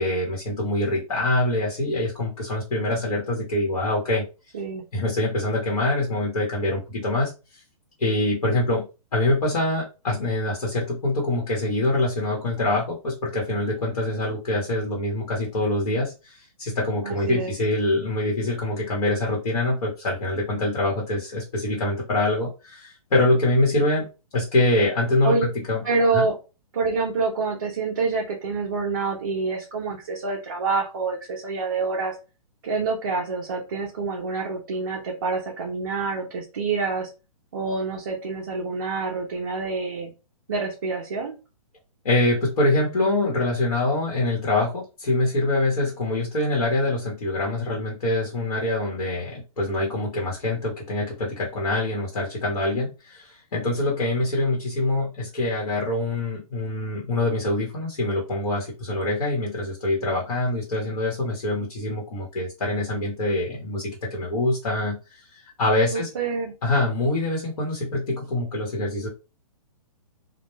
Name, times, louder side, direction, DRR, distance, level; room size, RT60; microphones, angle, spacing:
voice 1, 0.0-4.2 4.9-7.6 8.0-8.8 9.1-24.0 24.3-25.8 26.1-26.2 42.0-66.1 66.6-69.1, left 2 dB, 70° left, -3 dB, 1.1 m, -25 dB
voice 2, 17.0-17.5 25.2-25.5 25.8-26.3 26.7-32.1 32.6-37.1 37.5-40.1 40.5-41.4 65.9-66.5, right 4 dB, 30° right, -2 dB, 0.4 m, -27 dB
2.2 x 2.1 x 3.0 m, 0.30 s
hypercardioid pair, 175°, 19 cm